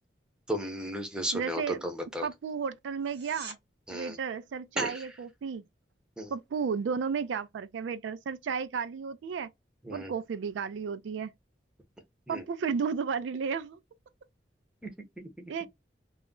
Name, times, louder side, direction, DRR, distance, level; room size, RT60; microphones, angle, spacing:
voice 1, 0.5-2.3 3.9-4.2 4.8-5.0 6.2-6.3 9.8-10.1 12.3-12.4 14.8-14.9 15.2-15.5, right 1 dB, 5° right, 0.6 m, -34 dB
voice 2, 1.3-1.9 2.2-3.6 3.9-5.6 6.3-9.5 9.9-11.3 12.3-13.8 15.5-15.7, right 6 dB, 80° right, 0.3 m, -33 dB
sound 1, 3.0-3.6 15.0-15.1, right 4 dB, 65° right, 0.9 m, -44 dB
2.3 x 2.0 x 3.6 m
head